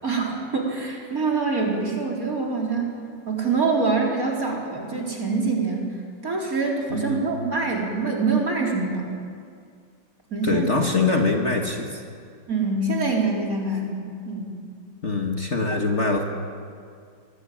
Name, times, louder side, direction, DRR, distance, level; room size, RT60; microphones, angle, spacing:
voice 1, 0.0-2.9 3.3-5.9 6.2-9.1 10.3-10.7 12.5-14.6, right 4 dB, 45° right, -1 dB, 4.5 m, -25 dB
voice 2, 6.9-7.2 10.4-12.0 15.0-16.2, left 3 dB, 35° left, 2 dB, 1.9 m, -23 dB
24.5 x 19.0 x 8.8 m, 2.2 s
omnidirectional pair, 2.1 m